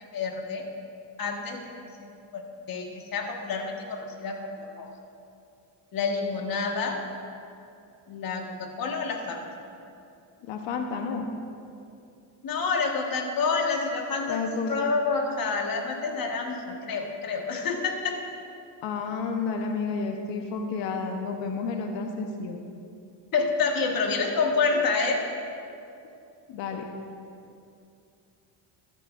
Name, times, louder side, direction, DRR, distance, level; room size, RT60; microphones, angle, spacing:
voice 1, 0.1-0.7 1.2-1.6 2.0-2.1 2.3-2.4 2.7-4.9 5.9-7.0 8.1-9.4 12.4-18.2 23.3-25.2, left 4 dB, 50° left, 2 dB, 1.5 m, -28 dB
voice 2, 10.5-11.3 14.3-14.7 18.8-22.6 26.5-26.9, left 4 dB, 70° left, 4 dB, 1.0 m, -31 dB
13.0 x 12.0 x 2.5 m, 2.6 s
cardioid pair, 105°, 46 cm